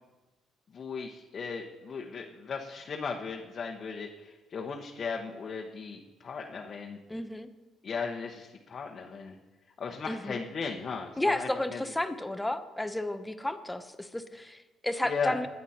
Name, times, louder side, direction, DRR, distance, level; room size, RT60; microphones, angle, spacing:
voice 1, 0.7-7.0 7.8-9.4 9.8-11.8 15.0-15.4, left 5 dB, 45° left, 0 dB, 1.2 m, -37 dB
voice 2, 7.1-7.5 10.1-10.4 11.2-15.5, left 1 dB, 10° left, 9 dB, 1.1 m, -32 dB
20.5 x 8.3 x 4.4 m, 1.2 s
supercardioid pair, 75°, 0 cm